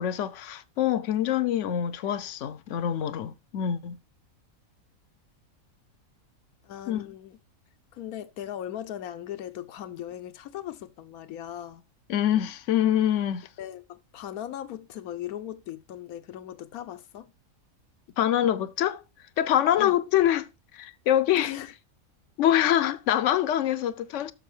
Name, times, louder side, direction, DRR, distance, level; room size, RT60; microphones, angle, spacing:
voice 1, 0.0-4.0 6.9-7.1 12.1-13.5 18.2-19.0 19.4-21.5 22.4-24.3, left 11 dB, 65° left, 0.9 m, -25 dB
voice 2, 6.6-7.4 7.9-11.9 13.6-17.3 19.8-20.0 21.4-21.7, left 11 dB, 85° left, 1.1 m, -38 dB
12.0 x 6.5 x 3.2 m
omnidirectional pair, 1.5 m